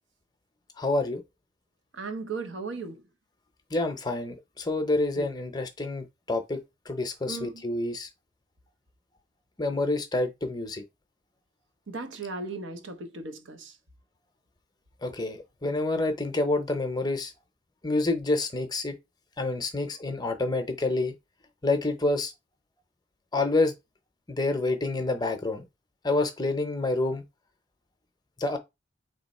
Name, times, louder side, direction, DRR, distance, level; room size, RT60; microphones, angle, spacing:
voice 1, 0.8-1.2 3.7-6.6 6.9-8.1 9.6-10.8 15.0-17.3 17.8-18.9 19.4-21.1 21.6-22.3 23.3-23.7 24.3-25.6 26.0-27.2 28.4-28.6, left 2 dB, 20° left, 0.7 m, -28 dB
voice 2, 1.9-3.0 5.2-5.3 7.3-7.7 11.9-13.8, right 3 dB, 75° right, 0.8 m, -36 dB
4.0 x 3.2 x 4.1 m
head